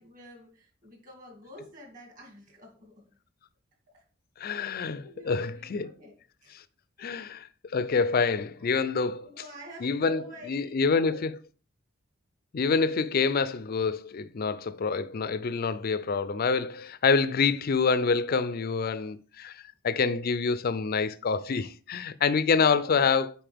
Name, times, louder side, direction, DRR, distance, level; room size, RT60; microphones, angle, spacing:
voice 1, 0.0-2.9 3.9-4.0 4.6-6.1 6.4-6.6 7.0-7.3 9.2-11.2 22.6-23.0, left 1 dB, 40° right, 2.4 m, -49 dB
voice 2, 4.4-5.9 6.5-6.6 7.0-9.3 9.8-11.4 12.5-23.3, left 5 dB, 45° left, 0.4 m, -27 dB
9.1 x 4.3 x 3.5 m
head